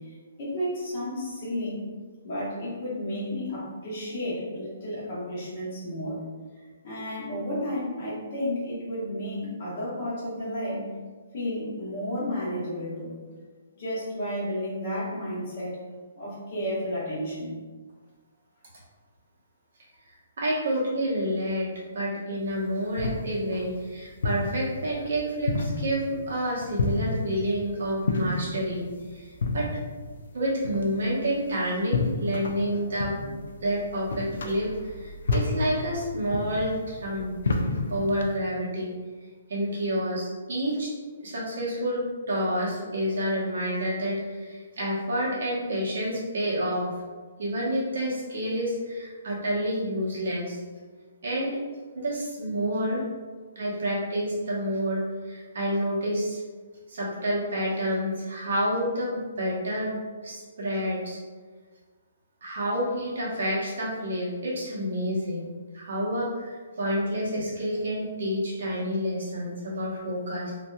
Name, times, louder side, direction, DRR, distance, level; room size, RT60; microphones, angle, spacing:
voice 1, 0.0-1.8 2.2-6.2 6.8-10.9 11.3-13.1 13.8-15.8 16.2-17.5, left 1 dB, 40° left, -7 dB, 1.1 m, -32 dB
voice 2, 20.4-28.8 29.1-29.7 30.3-33.3 33.6-37.6 37.9-38.9 39.5-40.9 41.2-46.9 47.4-50.6 51.2-51.6 51.9-53.0 53.5-56.4 56.9-61.2 62.4-65.4 65.7-70.5, equal, 65° right, -5 dB, 1.0 m, -29 dB
sound 1, 22.5-38.4, left 3 dB, 70° left, 0.3 m, -32 dB
2.8 x 2.5 x 2.2 m, 1.4 s
hypercardioid pair, 170°, 0 cm